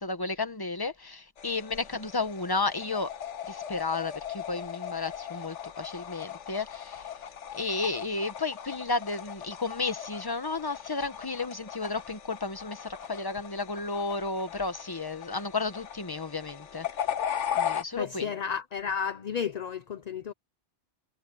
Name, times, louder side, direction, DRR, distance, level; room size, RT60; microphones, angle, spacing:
voice 1, 0.0-3.1 3.5-7.1 7.5-16.9 17.6-18.3, left 3 dB, 20° left, 1.1 m, -32 dB
sound 1, 1.4-17.8, left 9 dB, 85° left, 1.3 m, -38 dB
voice 2, 18.0-20.3, left 7 dB, 45° left, 0.7 m, -32 dB
omnidirectional pair, 1.2 m